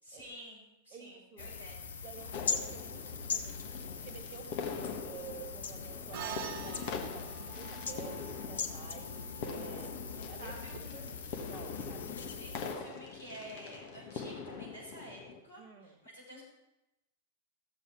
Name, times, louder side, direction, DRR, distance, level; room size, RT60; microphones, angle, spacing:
voice 1, 0.0-1.9 10.4-11.1 12.2-16.4, equal, 85° left, -4 dB, 4.8 m, -50 dB
voice 2, 0.9-1.6 2.0-11.2 11.5-12.1 15.6-16.0, right 7 dB, 30° right, 5 dB, 1.5 m, -51 dB
sound 1, 1.4-12.7, left 5 dB, 70° left, 1.0 m, -41 dB
sound 2, 2.3-15.4, left 5 dB, 50° left, 1.3 m, -43 dB
sound 3, 6.1-10.8, right 10 dB, 50° right, 0.7 m, -46 dB
15.0 x 7.7 x 4.6 m, 0.95 s
figure-of-eight pair, 95°, 0 cm